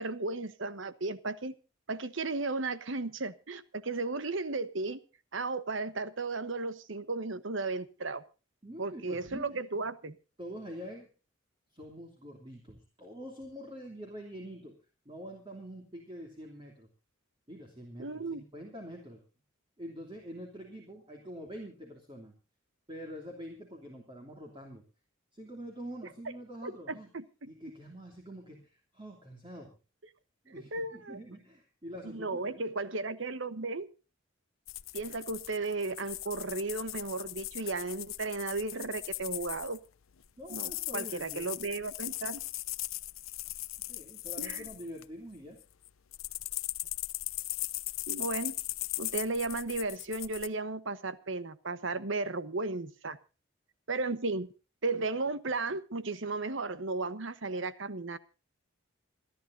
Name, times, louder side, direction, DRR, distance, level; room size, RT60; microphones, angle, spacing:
voice 1, 0.0-1.5 1.9-5.0 5.3-8.2 8.8-10.2 18.0-18.4 26.6-27.5 30.7-31.2 32.0-33.9 34.9-39.8 40.5-42.4 44.4-44.7 48.1-48.6 49.0-53.2 53.9-54.5 54.8-58.2, right 3 dB, 65° right, 14 dB, 1.1 m, -35 dB
voice 2, 8.6-9.6 10.4-11.1 11.7-14.7 15.0-16.9 17.5-19.2 19.8-22.4 22.9-24.8 25.3-27.1 27.5-29.8 30.4-32.7 40.4-41.6 43.9-45.6, equal, 25° right, 1 dB, 2.9 m, -45 dB
sound 1, 34.7-39.8 40.4-45.0 45.6-50.5, left 18 dB, 85° left, 0.7 m, -39 dB
27.5 x 11.0 x 2.7 m, 0.34 s
head